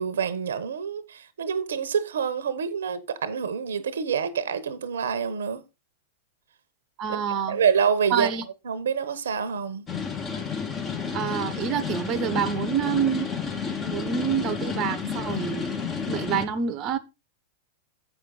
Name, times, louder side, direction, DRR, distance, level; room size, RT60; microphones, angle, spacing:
voice 1, 0.0-5.6 7.1-7.2 7.5-8.3 8.6-9.9, right 7 dB, 80° right, 0.9 m, -27 dB
voice 2, 7.0-7.6 8.1-8.4 11.1-13.3 13.8-15.7 16.1-17.0, right 8 dB, 40° right, 0.8 m, -27 dB
sound 1, 9.9-16.5, left 5 dB, 25° left, 1.5 m, -31 dB
7.8 x 6.0 x 3.9 m
hypercardioid pair, 105°, 0 cm